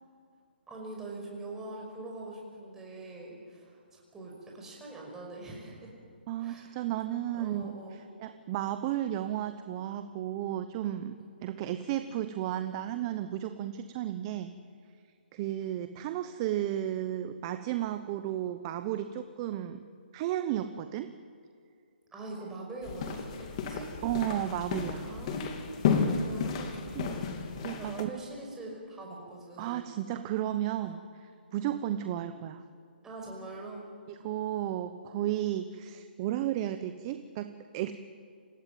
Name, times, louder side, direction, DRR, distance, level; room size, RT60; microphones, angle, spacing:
voice 1, 0.7-5.9 6.4-6.7 7.3-8.0 22.1-23.9 25.0-26.9 27.7-29.9 30.8-30.9 33.0-33.8, right 2 dB, 10° right, -2 dB, 5.5 m, -43 dB
voice 2, 6.3-7.8 8.2-11.2 11.4-14.5 15.3-19.8 20.1-21.2 24.0-25.1 26.9-27.2 27.6-28.1 29.6-31.0 31.5-32.6 34.2-37.9, right 12 dB, 25° right, 10 dB, 0.9 m, -33 dB
sound 1, 22.8-28.0, left 6 dB, 35° left, 2.6 m, -32 dB
26.5 x 15.5 x 9.4 m, 2.3 s
hypercardioid pair, 155°, 6 cm